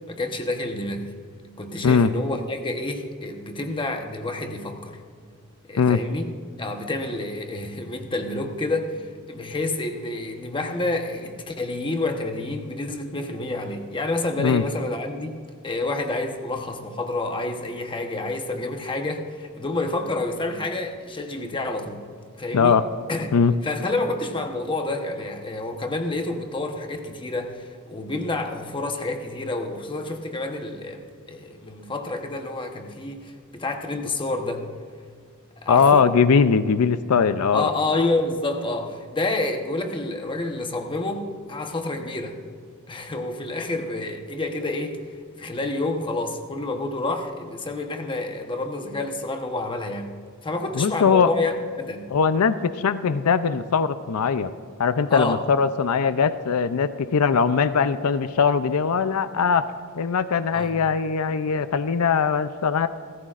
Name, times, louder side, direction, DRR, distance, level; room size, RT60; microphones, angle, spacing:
voice 1, 0.1-1.1 1.6-5.0 5.7-6.3 6.6-22.0 22.4-22.8 23.1-23.3 23.6-34.7 35.6-36.1 37.5-42.4 42.9-45.0 45.4-50.1 50.4-52.1 55.1-55.4 60.5-60.7, left 2 dB, 20° left, 1.0 m, -29 dB
voice 2, 35.7-37.7 50.7-51.3 52.1-54.5 54.8-59.6 60.0-62.9, left 6 dB, 80° left, 0.5 m, -20 dB
29.5 x 14.0 x 2.5 m
head